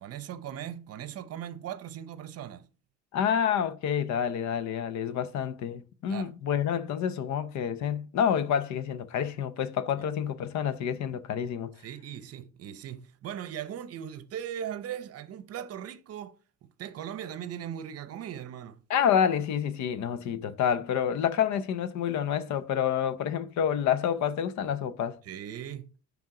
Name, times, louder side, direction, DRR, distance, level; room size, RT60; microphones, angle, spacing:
voice 1, 0.0-2.7 6.1-6.3 11.8-16.4 16.6-18.8 25.2-25.9, right 10 dB, 55° right, 0.8 m, -39 dB
voice 2, 3.1-11.7 18.9-25.2, left 8 dB, 75° left, 0.8 m, -28 dB
10.5 x 3.5 x 3.7 m
cardioid pair, 155°, 29 cm